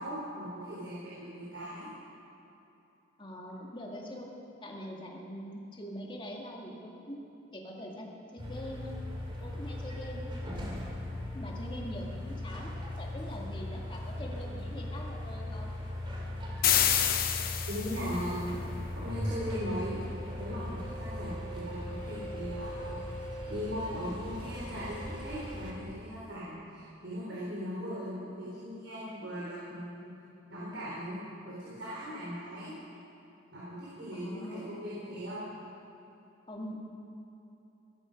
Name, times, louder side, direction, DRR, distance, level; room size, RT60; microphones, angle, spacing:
voice 1, 0.0-1.9 17.7-18.6 18.9-20.0 20.4-23.0 23.5-30.1 30.5-31.2 31.4-32.7 33.5-35.5, equal, 70° right, -8 dB, 3.8 m, -39 dB
voice 2, 3.2-4.3 4.6-7.2 7.5-9.0 9.4-10.3 11.3-12.7 13.0-15.7 34.1-34.6 36.5-36.8, equal, 25° left, -1 dB, 2.0 m, -43 dB
sound 1, 8.4-25.7, left 1 dB, 25° right, 2.6 m, -38 dB
sound 2, 16.6-18.2, left 9 dB, 50° left, 0.9 m, -27 dB
18.0 x 13.0 x 5.2 m, 2.9 s
head